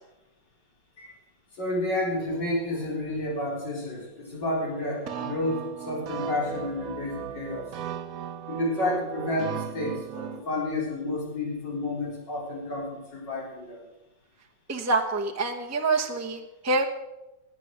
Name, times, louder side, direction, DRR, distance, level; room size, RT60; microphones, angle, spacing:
voice 1, 1.6-7.6 8.5-13.8, left 1 dB, 65° left, -3 dB, 4.9 m, -30 dB
sound 1, 5.1-10.4, right 8 dB, 60° right, 1.1 m, -36 dB
voice 2, 14.7-16.9, right 3 dB, 10° right, 3 dB, 0.9 m, -26 dB
18.0 x 9.4 x 6.6 m, 0.97 s
omnidirectional pair, 2.0 m